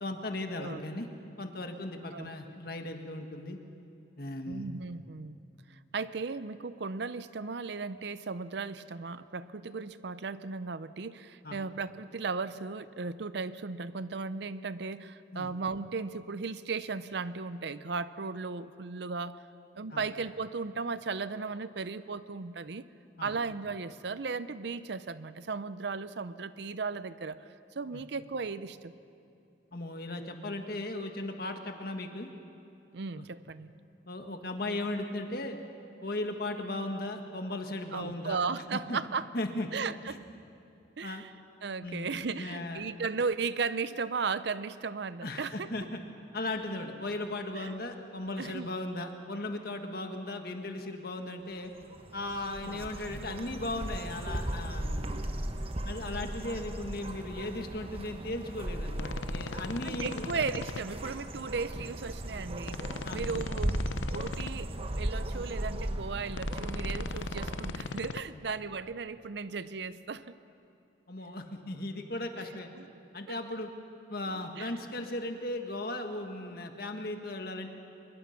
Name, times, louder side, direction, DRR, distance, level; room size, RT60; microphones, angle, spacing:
voice 1, 0.0-1.1 1.4-3.6 4.2-4.7 11.4-11.6 15.3-15.5 19.9-20.0 23.2-23.3 27.9-28.0 29.7-32.3 33.2-33.3 34.1-35.6 36.0-38.4 38.7-39.0 39.3-39.7 41.0-41.2 41.8-42.9 45.2-46.0 46.3-51.7 52.1-55.2 55.9-60.3 63.0-63.2 71.1-72.7 73.1-73.7 74.1-77.7, left 2 dB, 50° left, 5 dB, 1.6 m, -37 dB
voice 2, 4.5-5.4 5.7-19.4 19.7-22.8 23.2-28.9 32.9-33.7 37.9-39.3 39.7-40.2 41.0-41.3 41.6-45.7 47.5-47.7 48.4-48.7 52.6-52.8 59.8-62.8 63.1-70.3 72.8-72.9 73.3-73.4 74.3-74.7, right 4 dB, 65° right, 14 dB, 0.6 m, -36 dB
sound 1, 51.6-67.7, right 1 dB, 30° right, 0.9 m, -37 dB
sound 2, 58.9-60.8 62.6-64.5 66.3-68.2, left 4 dB, 75° left, 0.7 m, -39 dB
24.0 x 21.5 x 5.9 m, 2.7 s
head